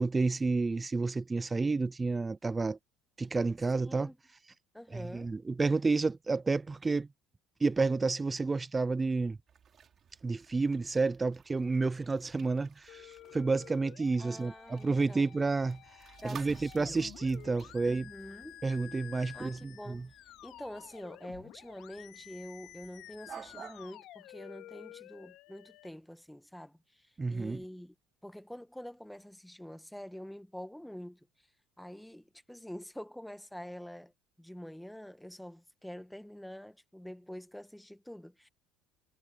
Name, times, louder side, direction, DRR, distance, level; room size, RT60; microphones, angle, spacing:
voice 1, 0.0-2.8 3.2-4.1 4.9-7.1 7.6-9.4 10.2-15.8 16.2-18.1 18.6-20.0 27.2-27.6, right 3 dB, 20° right, 0.6 m, -30 dB
voice 2, 3.7-4.2 4.7-5.3 14.2-15.3 16.2-17.0 17.9-18.6 19.3-20.1 20.4-27.9 28.2-31.5 31.8-34.1 34.4-38.5, equal, 5° left, 1.4 m, -46 dB
sound 1, 9.5-23.9, right 7 dB, 40° right, 4.2 m, -54 dB
sound 2, 12.9-25.9, left 15 dB, 65° left, 3.2 m, -52 dB
supercardioid pair, 105°, 0 cm